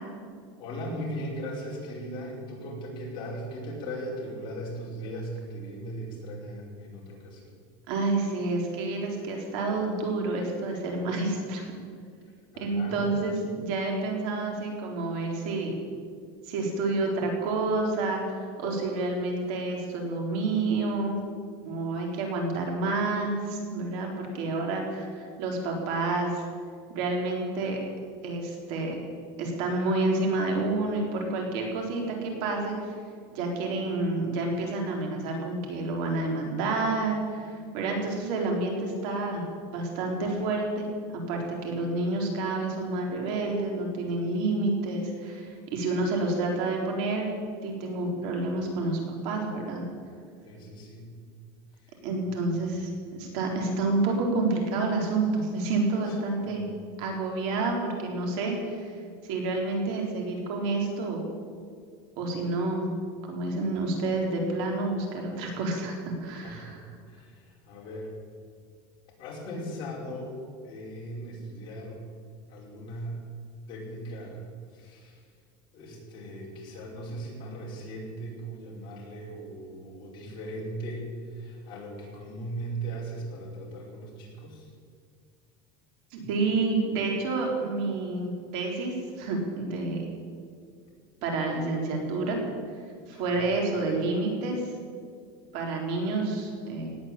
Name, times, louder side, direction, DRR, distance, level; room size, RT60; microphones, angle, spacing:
voice 1, 0.6-7.5 12.5-13.0 50.4-51.2 51.8-52.0 52.7-53.3 56.4-56.6 66.4-66.8 67.1-68.1 69.2-72.1 72.5-73.3 73.7-74.4 74.7-75.3 75.7-84.7 93.1-93.5, right 1 dB, 45° left, -3 dB, 5.2 m, -38 dB
voice 2, 7.9-11.7 12.6-15.7 16.4-21.2 21.6-26.4 26.9-27.8 28.2-29.0 29.4-32.9 33.3-39.5 39.7-49.8 52.0-56.6 57.0-58.9 59.2-61.2 62.2-62.8 63.3-66.7 86.1-90.1 91.2-92.4 93.1-94.7 95.5-96.9, right 2 dB, 60° right, 1 dB, 3.9 m, -29 dB
18.0 x 9.0 x 8.8 m, 2.1 s
cardioid pair, 155°, 12 cm